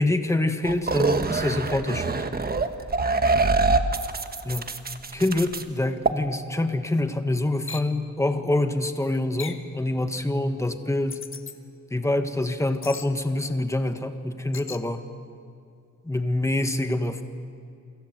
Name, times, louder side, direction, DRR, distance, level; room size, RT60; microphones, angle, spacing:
voice 1, 0.0-2.2 4.4-4.7 5.1-11.2 11.9-15.0 16.0-17.2, left 1 dB, 10° left, 7 dB, 1.4 m, -26 dB
sound 1, 0.6-5.6 6.1-6.2, right 3 dB, 30° right, 1.3 m, -24 dB
sound 2, 7.7-7.9 9.4-9.7 11.1-11.6 12.8-13.1 14.5-14.8, left 5 dB, 45° left, 1.5 m, -38 dB
29.0 x 25.0 x 8.0 m, 2.5 s
wide cardioid pair, 155°, 30 cm